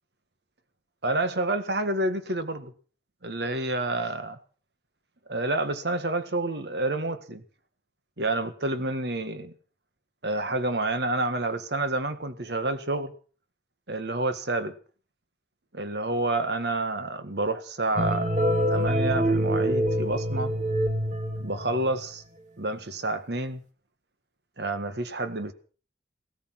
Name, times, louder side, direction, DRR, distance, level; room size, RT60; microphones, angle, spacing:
voice 1, 1.0-2.7 3.2-4.4 5.3-7.4 8.2-9.5 10.2-13.1 13.9-14.8 15.7-18.3 18.7-20.5 21.4-22.2 22.6-23.6 24.6-25.5, right 2 dB, 70° right, 1.8 m, -29 dB
sound 1, 18.0-22.1, equal, 40° right, 2.6 m, -26 dB
17.5 x 13.5 x 6.0 m
head